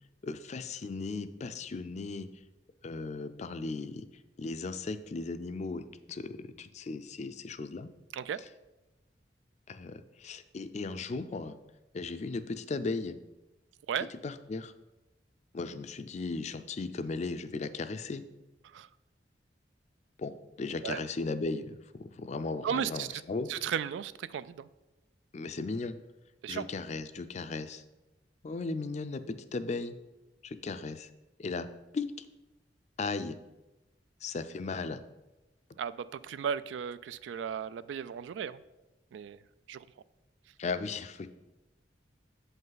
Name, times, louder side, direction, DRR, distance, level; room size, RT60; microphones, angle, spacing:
voice 1, 0.2-2.3 2.8-4.1 4.4-7.9 9.7-11.6 11.9-13.2 14.2-14.7 15.5-18.2 20.2-23.6 25.3-26.0 26.5-27.8 28.4-29.9 30.4-31.1 31.4-31.7 31.9-32.3 33.0-33.4 34.2-35.0 40.6-41.3, left 3 dB, 40° left, 11 dB, 0.4 m, -36 dB
voice 2, 22.6-23.2 23.5-24.7 26.4-26.7 35.8-38.6 39.1-39.4 39.7-39.9, right 8 dB, 85° right, 16 dB, 0.3 m, -35 dB
7.7 x 5.3 x 4.0 m, 1.0 s
head